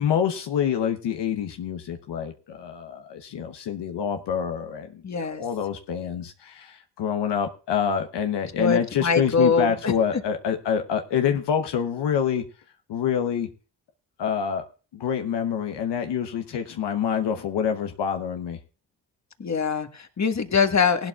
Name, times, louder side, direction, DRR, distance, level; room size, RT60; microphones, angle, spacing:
voice 1, 0.0-12.4 12.9-13.5 14.2-14.6 14.9-18.6, left 8 dB, 80° left, 5 dB, 1.0 m, -26 dB
voice 2, 5.0-5.4 8.6-9.9 19.4-21.1, left 5 dB, 40° left, 7 dB, 1.5 m, -23 dB
18.0 x 12.0 x 2.4 m, 0.35 s
supercardioid pair, 40°, 41 cm